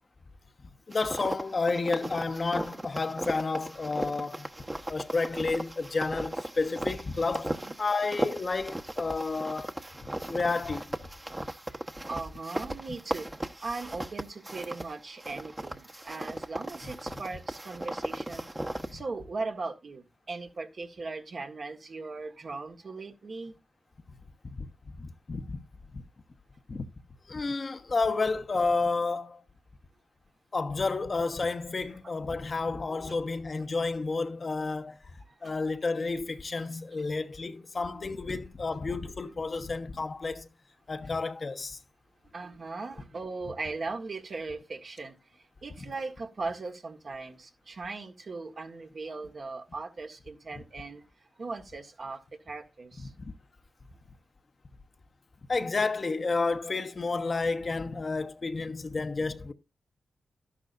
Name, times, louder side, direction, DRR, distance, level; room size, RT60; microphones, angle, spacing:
voice 1, 0.9-4.5 4.9-7.5 7.8-9.7 10.2-11.0 16.8-16.9 24.4-24.7 25.0-25.6 25.9-26.0 26.7-26.9 27.3-29.4 30.5-35.0 35.4-40.5 40.9-41.8 53.0-53.3 55.5-59.5, left 3 dB, 50° left, 1.1 m, -31 dB
sound 1, 0.9-14.9 15.2-19.0, right 1 dB, 20° right, 1.1 m, -37 dB
voice 2, 12.0-13.3 13.6-18.4 18.9-23.5 32.9-33.3 35.3-35.5 37.8-38.0 39.2-39.3 42.3-53.1, right 3 dB, 60° right, 1.6 m, -39 dB
12.0 x 11.0 x 2.6 m
supercardioid pair, 45°, 0 cm